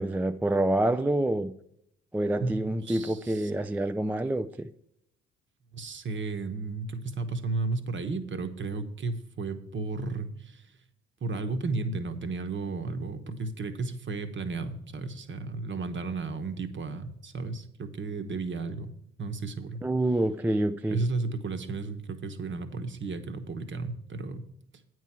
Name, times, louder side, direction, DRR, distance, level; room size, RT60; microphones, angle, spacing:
voice 1, 0.0-1.5 2.1-4.7 19.8-21.0, right 1 dB, 5° right, 0.3 m, -27 dB
voice 2, 2.9-3.5 5.7-10.6 11.2-18.9 19.2-19.8 20.9-24.5, right 3 dB, 35° right, 1.1 m, -33 dB
9.1 x 4.7 x 7.3 m
hypercardioid pair, 55°, 32 cm